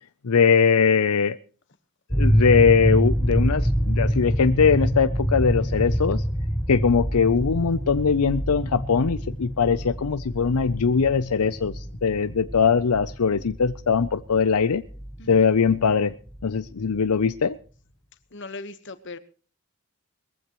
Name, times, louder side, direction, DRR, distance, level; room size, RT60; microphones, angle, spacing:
voice 1, 0.2-1.4 2.1-6.2 6.7-14.8 15.3-16.1 16.4-17.5, left 5 dB, 85° left, 0.6 m, -21 dB
sound 1, 2.1-17.0, equal, ahead, 1.0 m, -26 dB
voice 2, 18.3-19.2, left 3 dB, 55° left, 1.3 m, -38 dB
21.0 x 15.0 x 3.1 m
head